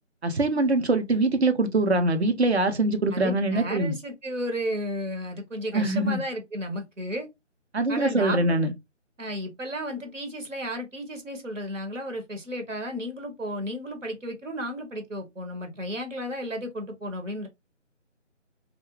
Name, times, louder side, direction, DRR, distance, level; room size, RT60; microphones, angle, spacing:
voice 1, 0.2-3.9 5.7-6.2 7.7-8.7, right 2 dB, 60° right, 0.6 m, -23 dB
voice 2, 3.1-7.3 7.9-8.5 9.2-17.5, equal, 85° right, 1.1 m, -33 dB
2.4 x 2.1 x 3.0 m
figure-of-eight pair, 155°, 37 cm